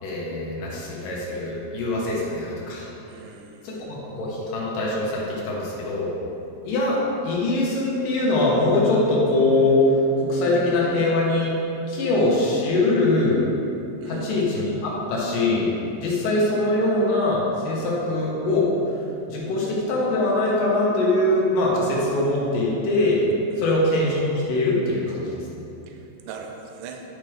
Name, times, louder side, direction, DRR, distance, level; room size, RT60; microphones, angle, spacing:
voice 1, 0.0-2.9 3.6-6.1 6.6-7.0 7.2-11.5 11.9-13.5 14.1-15.7 16.0-18.7 19.2-23.3 23.6-25.6, left 2 dB, 70° left, -5 dB, 3.0 m, -22 dB
voice 2, 3.1-3.7 14.0-14.5 23.5-23.7 25.9-26.0 26.3-27.0, right 5 dB, 80° right, 3 dB, 2.0 m, -39 dB
10.5 x 6.0 x 3.4 m, 2.8 s
omnidirectional pair, 4.1 m